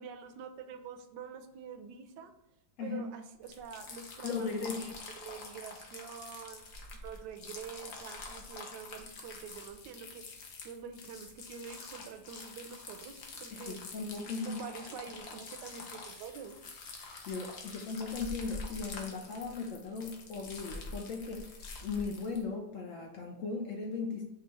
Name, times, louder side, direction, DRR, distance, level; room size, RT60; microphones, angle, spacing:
voice 1, 0.0-2.3 2.8-6.6 6.9-10.2 10.6-13.8 14.4-16.6, right 6 dB, 75° right, 7 dB, 1.1 m, -46 dB
voice 2, 2.8-3.1 4.2-4.8 13.5-14.5 17.0-21.6 21.8-24.2, left 4 dB, 85° left, 1 dB, 0.7 m, -37 dB
sound 1, 3.4-22.4, left 3 dB, 60° left, 1.1 m, -46 dB
5.5 x 2.4 x 3.9 m, 0.97 s
omnidirectional pair, 2.0 m